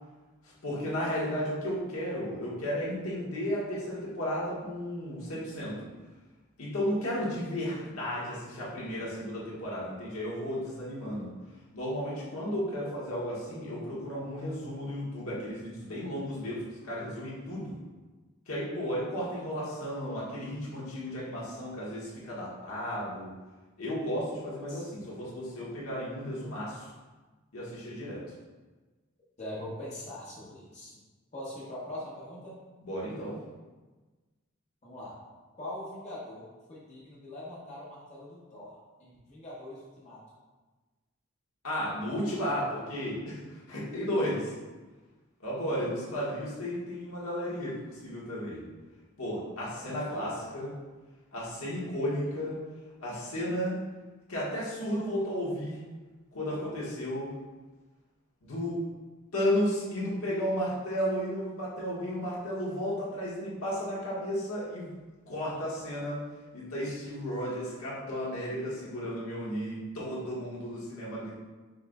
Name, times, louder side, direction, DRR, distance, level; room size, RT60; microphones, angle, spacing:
voice 1, 0.4-5.7 6.6-11.3 11.7-17.8 18.5-23.3 23.8-26.9 27.5-28.2 32.8-33.4 41.6-44.5 45.4-48.6 49.2-50.7 51.3-52.6 53.0-53.8 54.3-55.8 56.3-57.3 58.4-58.8 59.3-64.9 65.3-66.2 66.5-71.4, equal, 80° left, -6 dB, 1.4 m, -33 dB
voice 2, 29.4-31.0 31.3-32.6 34.8-35.2 35.5-38.7 39.0-40.2 49.7-50.3, left 1 dB, 30° left, -7 dB, 0.9 m, -42 dB
5.5 x 3.9 x 2.3 m, 1.3 s
head